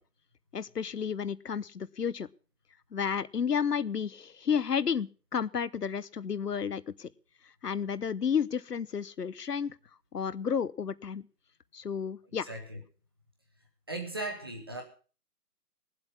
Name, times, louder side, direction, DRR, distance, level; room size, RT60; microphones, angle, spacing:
voice 1, 0.5-2.3 2.9-7.1 7.6-9.8 10.1-11.3 11.7-12.5, left 7 dB, 85° left, 18 dB, 0.8 m, -31 dB
voice 2, 12.4-12.8 13.9-14.8, right 2 dB, 15° right, 2 dB, 1.2 m, -37 dB
18.0 x 7.9 x 5.9 m, 0.38 s
figure-of-eight pair, 165°, 47 cm